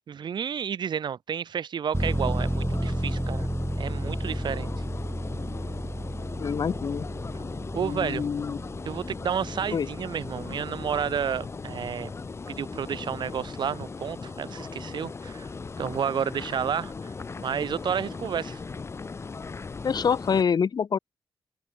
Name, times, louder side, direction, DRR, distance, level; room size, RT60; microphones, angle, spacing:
voice 1, 0.1-3.5 3.8-4.7 7.7-8.2 8.8-12.1 12.5-15.5 15.8-17.1 17.4-18.6, right 8 dB, 70° right, 1.2 m, -31 dB
sound 1, 1.9-20.4, left 4 dB, 35° left, 0.5 m, -38 dB
sound 2, 1.9-14.4 14.8-14.9, right 1 dB, 10° right, 1.7 m, -33 dB
voice 2, 6.4-7.0 7.8-8.6 9.7-9.9 19.8-21.0, left 6 dB, 55° left, 0.8 m, -26 dB
open air
cardioid pair, 60°, 8 cm